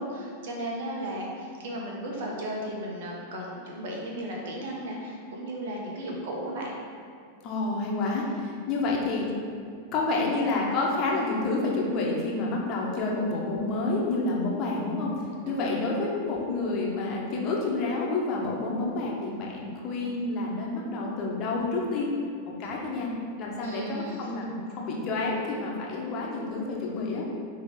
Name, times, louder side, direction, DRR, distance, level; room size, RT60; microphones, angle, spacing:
voice 1, 0.0-6.7 15.4-15.8 22.6-22.7 23.6-24.3, right 1 dB, 55° right, -2 dB, 1.3 m, -35 dB
voice 2, 7.4-9.3 9.9-15.1 15.5-22.1 22.6-23.1 23.4-27.3, left 3 dB, 35° left, -3 dB, 1.3 m, -29 dB
9.9 x 3.3 x 3.8 m, 2.3 s
figure-of-eight pair, 90°, 0 cm